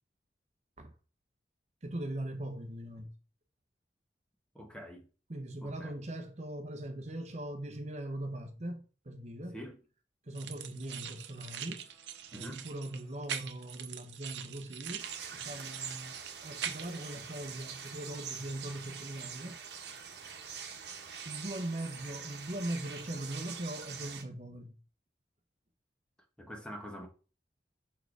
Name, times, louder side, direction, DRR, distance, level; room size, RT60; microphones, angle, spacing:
voice 1, 1.8-3.1 5.3-9.6 10.2-11.9 12.3-16.2 16.4-19.6 21.2-24.8, right 1 dB, 40° right, 0.9 m, -40 dB
voice 2, 4.5-5.1 5.6-5.9 9.5-9.8 12.3-12.7 26.4-27.1, equal, 5° left, 1.2 m, -44 dB
sound 1, 10.3-17.0, right 9 dB, 90° right, 0.7 m, -43 dB
sound 2, 10.8-13.6 14.6-17.2, left 1 dB, 55° left, 4.3 m, -69 dB
sound 3, 15.0-24.2, right 7 dB, 70° right, 1.1 m, -44 dB
6.2 x 4.7 x 4.7 m
head